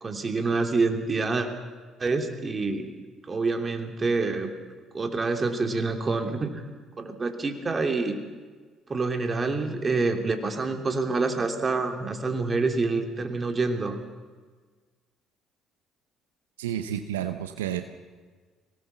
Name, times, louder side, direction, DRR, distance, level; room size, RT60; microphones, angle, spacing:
voice 1, 0.0-1.5 2.0-2.9 3.3-4.5 4.9-6.6 7.0-8.2 8.9-14.0, right 3 dB, 30° right, 6 dB, 3.1 m, -27 dB
voice 2, 16.6-17.8, right 10 dB, 85° right, 8 dB, 0.8 m, -30 dB
23.5 x 18.0 x 7.0 m, 1.4 s
hypercardioid pair, 55°, 0 cm